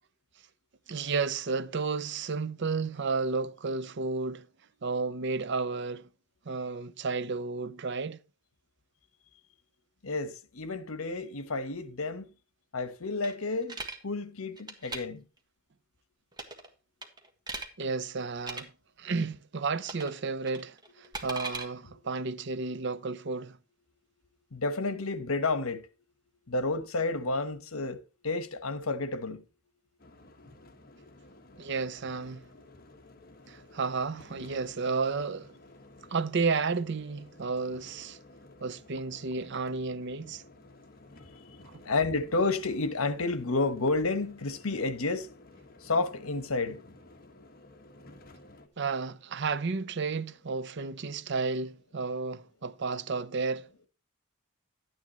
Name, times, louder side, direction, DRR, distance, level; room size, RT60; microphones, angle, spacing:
voice 1, 0.9-4.5 4.8-6.1 6.5-8.2 17.8-18.7 19.0-23.6 31.6-32.5 33.5-35.5 36.1-38.2 38.6-40.4 41.6-41.8 48.8-53.7, right 4 dB, 55° right, 0.6 m, -32 dB
voice 2, 10.0-12.3 12.7-15.2 24.5-25.9 26.5-29.4 41.5-41.6 41.8-45.3 45.8-46.8, left 3 dB, 80° left, 1.2 m, -31 dB
sound 1, 13.2-14.0 14.6-15.0 16.3-16.7 17.0-17.7 18.4-18.6 19.8-20.2 20.5-21.7, right 3 dB, 20° right, 1.6 m, -38 dB
sound 2, 30.0-48.7, left 2 dB, 45° left, 1.3 m, -54 dB
12.0 x 9.5 x 3.0 m
head